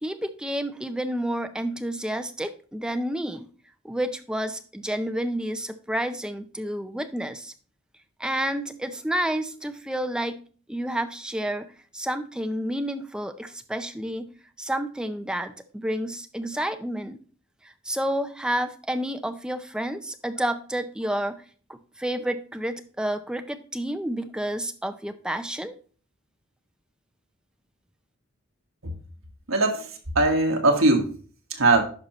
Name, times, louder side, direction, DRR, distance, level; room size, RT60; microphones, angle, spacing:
voice 1, 0.0-3.5 3.8-7.5 8.2-10.4 10.7-14.3 14.6-17.2 17.6-21.4 21.7-25.7, right 1 dB, 5° right, 8 dB, 0.5 m, -30 dB
voice 2, 29.5-31.1 31.5-31.8, right 2 dB, 80° right, 3 dB, 1.5 m, -21 dB
10.5 x 5.5 x 3.0 m, 0.41 s
head